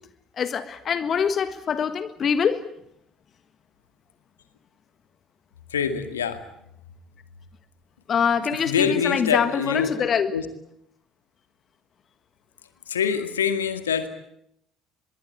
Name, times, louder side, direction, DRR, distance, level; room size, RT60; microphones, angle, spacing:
voice 1, 0.4-2.6 8.1-10.3, left 7 dB, 40° left, 12 dB, 1.6 m, -24 dB
voice 2, 5.7-6.4 8.5-10.5 12.9-14.1, left 7 dB, 80° left, 9 dB, 2.1 m, -25 dB
24.5 x 22.0 x 9.0 m, 0.76 s
figure-of-eight pair, 55°, 0 cm